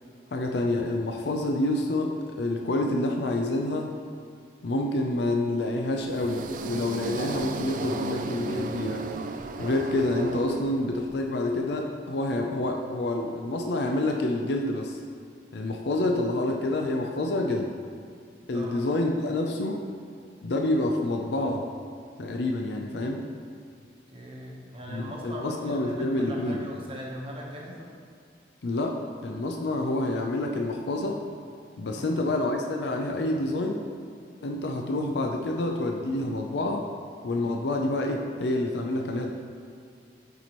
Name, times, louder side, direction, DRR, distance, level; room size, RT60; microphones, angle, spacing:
voice 1, 0.3-3.9 4.6-9.0 9.6-15.0 15.5-17.7 18.5-19.9 20.4-21.7 22.2-23.2 24.9-26.6 28.6-31.2 31.8-33.9 34.4-36.8 37.2-39.3, left 2 dB, 70° left, 2 dB, 0.5 m, -28 dB
sound 1, 6.0-11.1, right 3 dB, 45° right, 0.3 m, -35 dB
voice 2, 18.4-18.9 24.1-27.9 31.9-32.3, equal, 30° right, -2 dB, 1.0 m, -40 dB
9.2 x 4.5 x 3.0 m, 2.3 s
head